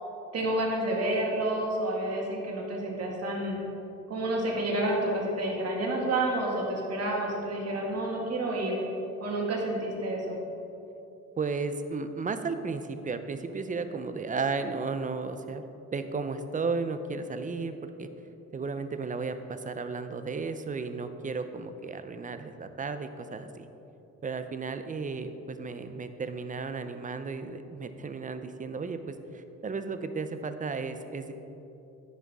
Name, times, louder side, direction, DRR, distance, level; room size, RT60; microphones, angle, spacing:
voice 1, 0.3-3.6 4.1-8.8 9.2-10.4, right 1 dB, 55° right, -2 dB, 1.9 m, -29 dB
voice 2, 11.4-15.6 15.9-18.1 18.5-23.7 24.2-31.3, right 4 dB, 25° right, 9 dB, 0.5 m, -34 dB
10.5 x 6.4 x 3.5 m, 3.0 s
cardioid pair, 90°, 30 cm